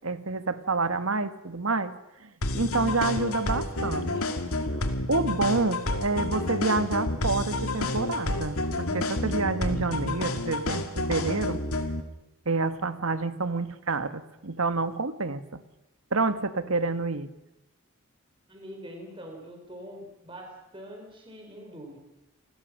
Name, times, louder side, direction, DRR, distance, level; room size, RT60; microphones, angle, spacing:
voice 1, 0.0-4.1 4.6-11.6 12.4-15.6 16.1-17.3, right 3 dB, 80° right, 11 dB, 1.5 m, -28 dB
sound 1, 2.4-12.0, left 2 dB, 90° left, 2.5 m, -29 dB
voice 2, 18.5-22.0, equal, 25° right, 2 dB, 5.2 m, -44 dB
29.0 x 20.0 x 6.6 m, 0.92 s
head